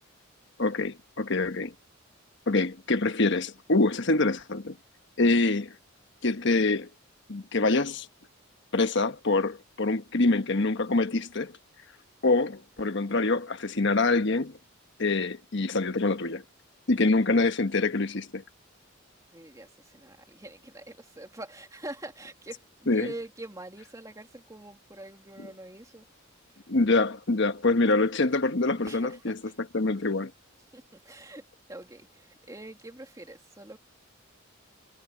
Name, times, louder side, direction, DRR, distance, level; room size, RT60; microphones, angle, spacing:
voice 1, 0.6-1.7 2.5-4.8 5.2-5.7 6.2-6.9 7.3-8.1 8.7-11.6 12.2-14.6 15.0-16.4 16.9-18.4 22.9-23.1 26.7-29.4 29.7-30.3, left 3 dB, 60° left, 1.2 m, -25 dB
voice 2, 19.3-26.0 26.5-26.7 27.9-28.0 28.8-29.3 30.7-33.8, right 2 dB, 15° right, 2.6 m, -44 dB
head